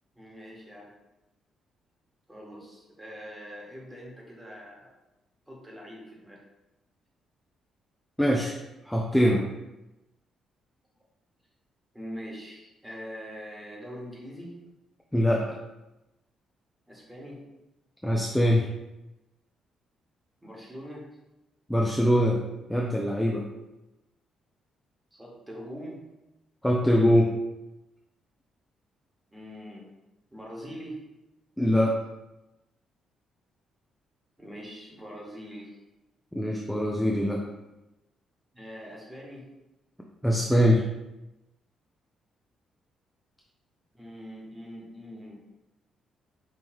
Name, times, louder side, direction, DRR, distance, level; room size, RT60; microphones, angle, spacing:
voice 1, 0.1-0.9 2.3-4.9 5.5-6.4 11.9-14.5 16.9-17.4 20.4-21.0 25.1-26.0 29.3-29.9 30.3-31.0 34.4-35.8 38.5-39.5 43.9-45.4, equal, 10° right, -4 dB, 1.6 m, -43 dB
voice 2, 8.2-8.6 8.9-9.4 15.1-15.6 18.0-18.7 21.7-22.4 22.7-23.4 26.6-27.3 31.6-32.0 36.3-37.4 40.2-40.8, equal, 5° left, -1 dB, 0.5 m, -23 dB
5.4 x 3.1 x 3.0 m, 0.97 s
cardioid pair, 90°, 0 cm